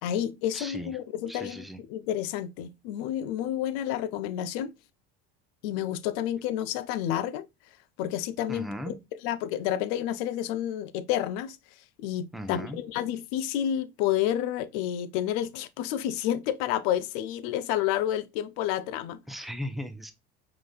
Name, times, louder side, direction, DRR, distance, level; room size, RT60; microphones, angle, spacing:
voice 1, 0.0-4.7 5.6-7.5 8.0-8.9 9.2-11.6 12.0-19.2, left 11 dB, 75° left, 0.6 m, -30 dB
voice 2, 0.5-1.0 1.3-1.8 8.5-9.0 12.3-12.8 19.3-20.1, equal, ahead, 0.8 m, -37 dB
4.9 x 3.9 x 2.3 m
supercardioid pair, 90°, 30 cm